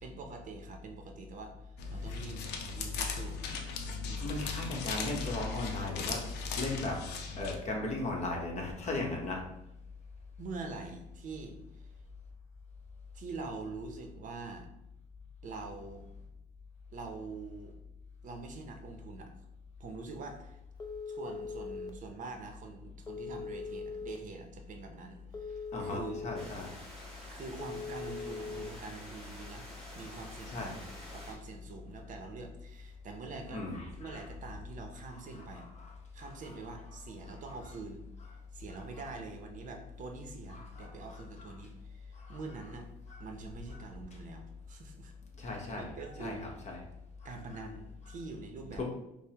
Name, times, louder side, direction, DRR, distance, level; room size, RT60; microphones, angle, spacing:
voice 1, 0.0-3.4 4.0-4.3 10.4-11.9 13.1-14.7 15.4-16.0 16.9-17.7 18.2-19.3 19.8-20.6 21.1-26.2 27.3-29.7 29.9-30.9 31.1-33.6 34.0-35.7 36.1-38.0 38.5-42.9 43.2-45.1 45.4-46.4 47.2-48.8, right 3 dB, 50° right, 4 dB, 0.6 m, -45 dB
sound 1, 1.8-7.6, left 5 dB, 80° left, 0.6 m, -38 dB
voice 2, 4.2-6.2 6.6-7.0 7.4-9.4 25.7-26.7 30.5-30.7 33.5-34.3 35.1-36.5 37.3-37.5 38.9-39.0 40.5-41.5 42.1-42.4 43.1-43.2 43.7-43.8 45.4-46.8 47.2-47.3 48.7-48.8, left 2 dB, 40° left, 0 dB, 0.9 m, -38 dB
Telephone, 20.8-21.9 23.1-24.2 25.3-26.4 27.6-28.7, left 5 dB, 25° left, 0.4 m, -41 dB
sound 2, 26.3-31.3, equal, 5° left, 1.4 m, -49 dB
5.2 x 2.0 x 2.8 m, 0.85 s
cardioid pair, 110°, 17 cm